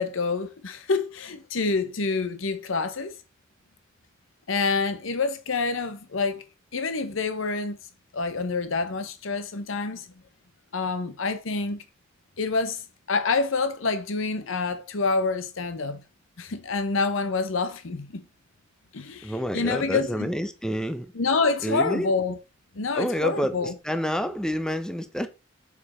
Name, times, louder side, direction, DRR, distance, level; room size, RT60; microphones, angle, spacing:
voice 1, 0.0-3.2 4.5-6.4 6.7-7.8 8.1-10.1 10.7-11.8 12.4-12.8 13.1-16.0 16.4-18.2 18.9-20.3 21.1-22.4 22.7-23.7, left 4 dB, 70° left, 0.8 m, -27 dB
voice 2, 19.2-21.1 21.6-22.1 22.9-25.3, equal, 5° left, 0.6 m, -28 dB
6.8 x 4.8 x 4.2 m
head